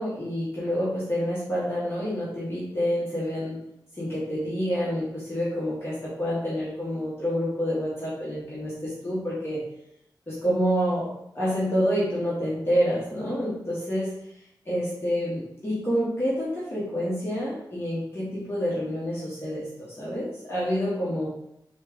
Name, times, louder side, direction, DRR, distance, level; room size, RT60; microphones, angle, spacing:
voice 1, 0.0-3.6 4.0-9.6 10.3-14.1 14.6-21.3, equal, 30° left, -8 dB, 1.4 m, -28 dB
4.1 x 3.6 x 3.5 m, 0.78 s
wide cardioid pair, 125°, 8 cm